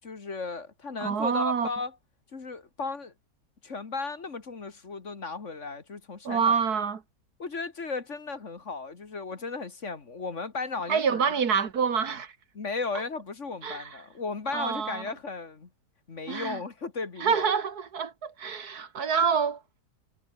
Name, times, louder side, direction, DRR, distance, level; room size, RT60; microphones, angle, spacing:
voice 1, 0.0-1.9 2.3-3.1 3.6-6.5 7.4-11.2 12.5-15.7 16.1-17.5, left 4 dB, 45° left, 2.2 m, -35 dB
voice 2, 1.0-1.7 6.2-7.0 10.9-12.3 13.6-14.0 14.5-15.1 16.3-16.6 17.2-19.6, right 6 dB, 65° right, 2.1 m, -27 dB
omnidirectional pair, 1.8 m